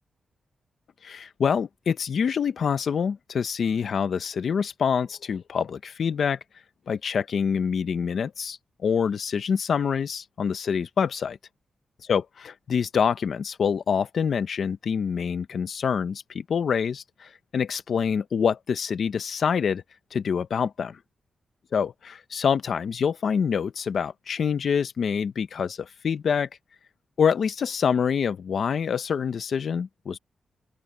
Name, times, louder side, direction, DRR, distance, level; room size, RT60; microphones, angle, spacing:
voice 1, 1.0-6.4 6.9-11.4 12.0-19.8 20.1-21.0 21.7-26.5 27.2-30.2, left 7 dB, 55° left, 1.0 m, -26 dB
open air
wide cardioid pair, 155°, 0 cm